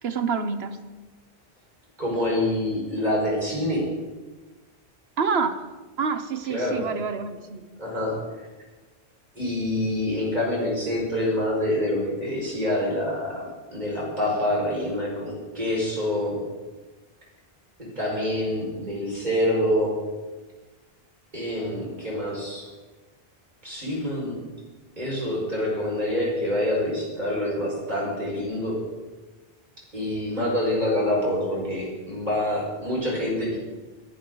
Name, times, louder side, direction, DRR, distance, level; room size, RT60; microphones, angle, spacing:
voice 1, 0.0-0.8 5.2-5.6 6.0-7.7 30.4-30.5, right 5 dB, 80° right, 10 dB, 1.3 m, -27 dB
voice 2, 2.0-3.9 6.5-6.9 7.8-8.2 9.3-13.4 13.7-16.4 17.8-20.0 21.3-22.7 23.6-24.4 25.0-28.8 29.9-33.6, left 1 dB, 45° right, -4 dB, 5.6 m, -26 dB
21.5 x 11.5 x 4.0 m, 1.2 s
omnidirectional pair, 1.0 m